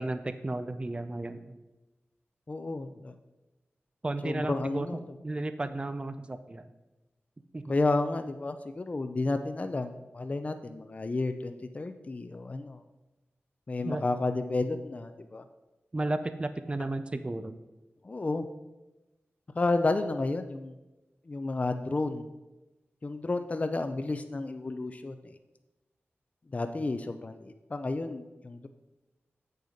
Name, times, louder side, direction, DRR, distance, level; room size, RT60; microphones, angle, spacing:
voice 1, 0.0-1.6 4.0-6.7 7.5-7.6 13.8-14.0 15.9-17.5, right 2 dB, 25° right, 10 dB, 0.4 m, -33 dB
voice 2, 2.5-3.2 4.2-5.0 7.7-12.8 13.7-15.4 18.0-18.5 19.6-20.7 21.3-22.2 23.0-25.3 26.5-28.7, left 2 dB, 35° left, 8 dB, 0.4 m, -31 dB
8.0 x 6.6 x 5.0 m, 1.1 s
wide cardioid pair, 110°, 4 cm